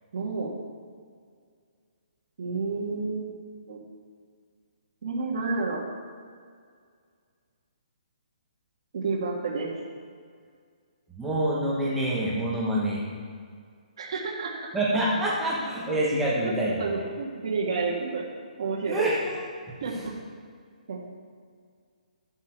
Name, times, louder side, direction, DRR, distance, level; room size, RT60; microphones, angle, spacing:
voice 1, 0.1-0.5 2.4-3.4 3.7-3.8 5.0-5.8 8.9-9.8 14.0-14.6 16.4-16.5 16.8-18.2 18.6-19.0 19.8-20.1 20.9-21.0, right 4 dB, 40° right, -5 dB, 1.5 m, -30 dB
voice 2, 11.1-13.0 14.7-16.9 18.9-19.4 19.7-20.0, right 1 dB, 5° right, -6 dB, 1.0 m, -26 dB
13.0 x 8.0 x 4.5 m, 2.1 s
hypercardioid pair, 180°, 4 cm